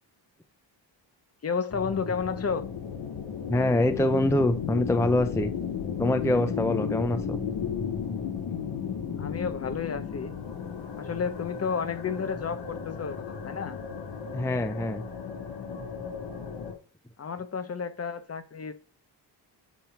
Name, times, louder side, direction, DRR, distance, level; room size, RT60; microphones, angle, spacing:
voice 1, 1.4-2.7 9.2-10.3 11.0-13.8 17.2-18.7, left 6 dB, 35° left, 0.8 m, -31 dB
sound 1, 1.7-16.7, left 7 dB, 90° left, 2.5 m, -34 dB
voice 2, 3.5-5.5 6.0-7.4 8.5-8.6 14.3-15.0, left 1 dB, 5° left, 0.5 m, -25 dB
7.3 x 4.5 x 5.7 m
wide cardioid pair, 165°, 44 cm